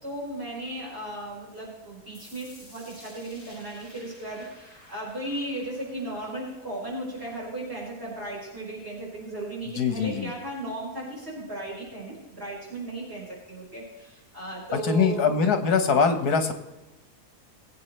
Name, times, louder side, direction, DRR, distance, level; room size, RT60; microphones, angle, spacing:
voice 1, 0.0-15.3, right 1 dB, 40° right, -7 dB, 5.7 m, -36 dB
sound 1, 2.1-8.1, equal, 15° left, 4.8 m, -53 dB
voice 2, 9.6-10.3 14.8-16.5, left 5 dB, 75° left, 7 dB, 1.8 m, -23 dB
22.5 x 8.5 x 3.3 m, 1.0 s
omnidirectional pair, 1.7 m